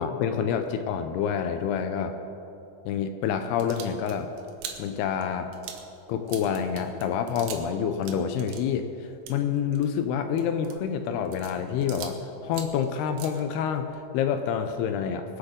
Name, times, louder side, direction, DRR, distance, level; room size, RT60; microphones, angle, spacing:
voice 1, 0.0-2.1 2.9-4.3 4.8-5.5 6.1-8.9 9.3-15.4, left 7 dB, 80° left, 7 dB, 2.4 m, -27 dB
sound 1, 3.5-7.7 8.0-12.2 12.5-13.9, right 8 dB, 85° right, 3.6 m, -43 dB
23.0 x 8.3 x 5.1 m, 2.9 s
omnidirectional pair, 5.2 m